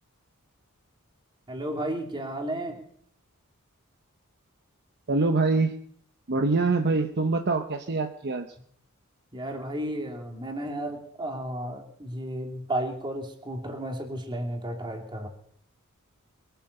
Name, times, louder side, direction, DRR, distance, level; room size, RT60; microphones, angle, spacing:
voice 1, 1.5-2.8 9.3-15.3, right 1 dB, 20° right, 2 dB, 2.7 m, -33 dB
voice 2, 5.1-5.7 6.3-8.5, right 3 dB, 50° right, 6 dB, 0.9 m, -24 dB
22.5 x 9.1 x 6.7 m, 0.65 s
head